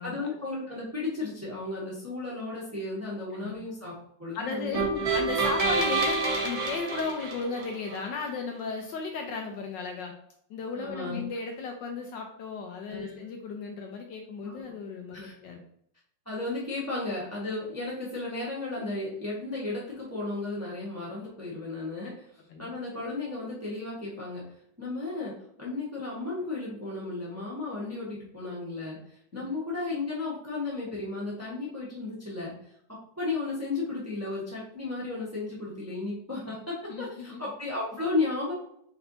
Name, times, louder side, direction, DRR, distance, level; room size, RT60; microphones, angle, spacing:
voice 1, 0.0-3.9 4.2-5.0 10.7-11.2 12.9-13.2 14.4-14.7 15.1-15.3 16.2-22.2 22.6-24.5 24.8-29.0 29.3-32.6 32.9-38.5, left 3 dB, 10° right, -6 dB, 0.9 m, -34 dB
voice 2, 4.3-4.8 5.1-10.1 10.5-15.6 22.5-22.7 29.3-29.4 36.9-37.4, left 4 dB, 70° left, 3 dB, 1.2 m, -35 dB
sound 1, 4.7-8.0, right 3 dB, 50° right, 0.4 m, -28 dB
4.3 x 4.2 x 2.7 m, 0.70 s
omnidirectional pair, 2.2 m